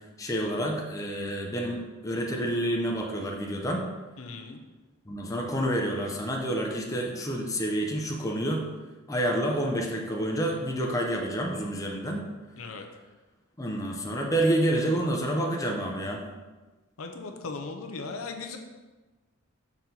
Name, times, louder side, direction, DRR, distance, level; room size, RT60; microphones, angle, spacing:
voice 1, 0.2-3.9 5.1-8.7 9.1-12.3 13.6-16.2, right 1 dB, 15° left, 0 dB, 0.6 m, -28 dB
voice 2, 4.2-4.6 12.6-12.9 17.0-18.6, left 4 dB, 80° left, 4 dB, 0.7 m, -38 dB
6.0 x 4.3 x 3.9 m, 1.2 s
head